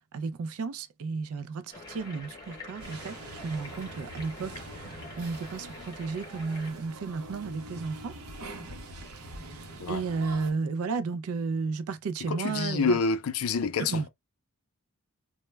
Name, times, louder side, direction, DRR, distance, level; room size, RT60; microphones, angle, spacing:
voice 1, 0.1-3.2 3.4-8.1 9.4-13.0 13.9-14.1, right 4 dB, 70° right, 0.3 m, -33 dB
sound 1, 1.7-6.7, left 2 dB, 15° left, 0.7 m, -46 dB
sound 2, 2.8-10.5, right 1 dB, 90° right, 0.7 m, -44 dB
voice 2, 12.3-14.1, left 5 dB, 70° left, 0.4 m, -28 dB
2.1 x 2.1 x 3.1 m
head